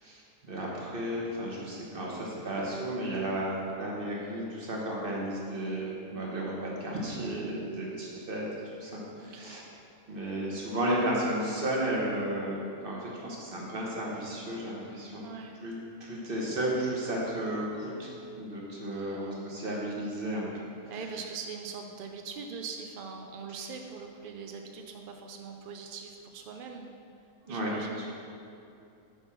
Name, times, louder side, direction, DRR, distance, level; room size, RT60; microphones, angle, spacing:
voice 1, 0.0-8.4 8.8-9.6 10.1-15.2 15.6-15.7 16.0-20.7 27.4-27.7, right 1 dB, 40° right, -4 dB, 1.4 m, -33 dB
voice 2, 7.0-7.6 9.2-9.6 15.2-15.6 18.9-19.7 20.9-26.9 27.5-28.1, right 5 dB, 75° right, 3 dB, 0.4 m, -42 dB
8.4 x 3.6 x 5.8 m, 2.7 s
omnidirectional pair, 1.5 m